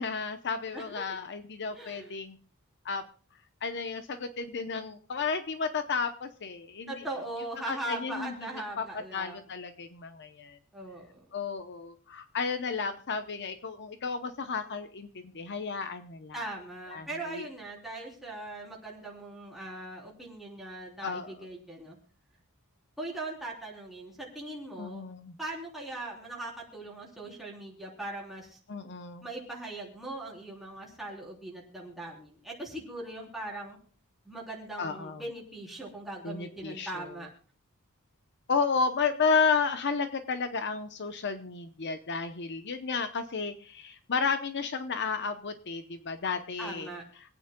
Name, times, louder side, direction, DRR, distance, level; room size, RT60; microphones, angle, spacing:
voice 1, 0.0-2.4 2.8-3.0 3.6-6.9 7.7-8.8 9.1-10.6 11.3-16.5 16.9-17.4 21.0-21.5 24.8-25.4 28.7-29.3 34.8-35.2 36.2-37.1 38.5-46.9, left 5 dB, 50° left, 9 dB, 0.8 m, -32 dB
voice 2, 0.7-1.2 1.7-2.1 6.9-9.4 10.7-11.4 16.3-22.0 23.0-25.0 25.4-28.6 29.2-33.8 34.3-37.3 46.6-47.0, right 2 dB, ahead, -3 dB, 3.5 m, -40 dB
26.5 x 9.1 x 2.2 m, 0.42 s
head